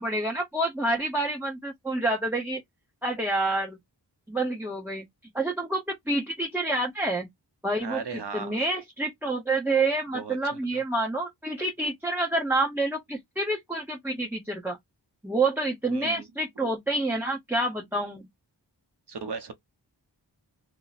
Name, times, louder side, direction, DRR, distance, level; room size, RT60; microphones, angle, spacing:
voice 1, 0.0-2.6 3.0-3.8 4.3-5.1 5.3-7.3 7.6-8.0 8.3-14.8 15.2-18.3, right 2 dB, 5° right, 0.9 m, -28 dB
voice 2, 7.8-8.6 10.1-10.8 15.9-16.2 16.6-16.7 19.1-19.5, right 5 dB, 65° right, 0.9 m, -37 dB
2.8 x 2.2 x 4.0 m
wide cardioid pair, 55°, 43 cm